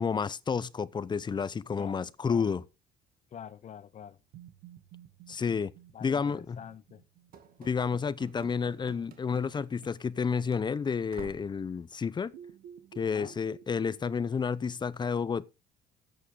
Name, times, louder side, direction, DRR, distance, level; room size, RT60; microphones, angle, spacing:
voice 1, 0.0-2.6 5.3-5.7 6.0-6.6 7.6-12.3 13.0-15.5, left 6 dB, 25° left, 0.6 m, -30 dB
voice 2, 1.8-2.5 3.3-4.2 5.9-7.0 13.0-13.3, left 9 dB, 45° left, 1.0 m, -46 dB
sound 1, 4.3-8.3 12.3-14.8, right 9 dB, 85° right, 1.6 m, -53 dB
Run / Slam, 7.3-10.2 10.5-10.6 11.1-11.6, right 7 dB, 60° right, 1.9 m, -51 dB
13.5 x 8.3 x 3.8 m
cardioid pair, 110°, 17 cm